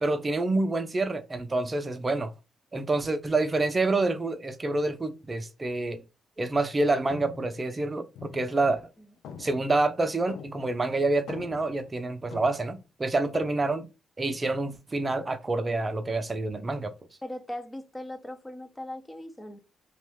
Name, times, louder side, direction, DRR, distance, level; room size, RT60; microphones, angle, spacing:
voice 1, 0.0-2.3 2.7-6.0 6.4-8.8 9.4-13.9 14.2-16.9, right 2 dB, 30° right, 0.6 m, -27 dB
sound 1, 6.7-6.8 7.1-8.9 9.2-10.9 11.1-12.8 13.3-13.7, left 6 dB, 80° left, 0.4 m, -45 dB
voice 2, 17.2-19.6, left 1 dB, 15° left, 0.8 m, -39 dB
3.0 x 2.5 x 3.5 m
supercardioid pair, 55°, 0 cm